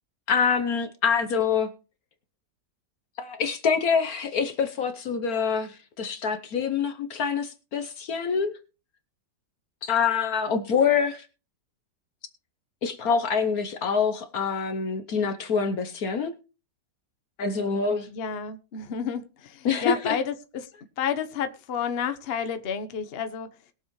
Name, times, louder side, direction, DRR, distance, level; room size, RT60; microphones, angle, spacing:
voice 1, 0.3-1.7 3.2-8.5 9.8-11.3 12.8-16.3 17.4-18.1 19.6-20.2, left 6 dB, 60° left, 1.2 m, -25 dB
voice 2, 18.1-20.7 21.0-23.5, left 7 dB, 40° left, 1.0 m, -30 dB
21.0 x 7.3 x 3.1 m
omnidirectional pair, 1.9 m